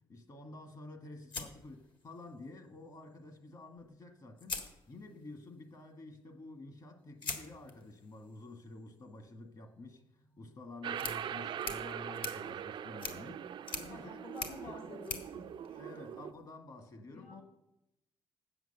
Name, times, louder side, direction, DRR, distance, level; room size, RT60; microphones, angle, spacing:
voice 1, 0.1-10.0 10.4-14.3 14.6-14.9 15.7-17.4, left 2 dB, 45° left, 1.6 m, -50 dB
sound 1, 1.3-2.4 3.8-3.9 4.4-5.4 7.2-16.4, left 4 dB, 60° left, 1.7 m, -45 dB
sound 2, 10.8-16.3, right 9 dB, 60° right, 0.4 m, -42 dB
voice 2, 13.6-15.4 17.1-17.4, left 2 dB, 85° left, 2.6 m, -50 dB
8.0 x 8.0 x 6.7 m
cardioid pair, 100°, 9 cm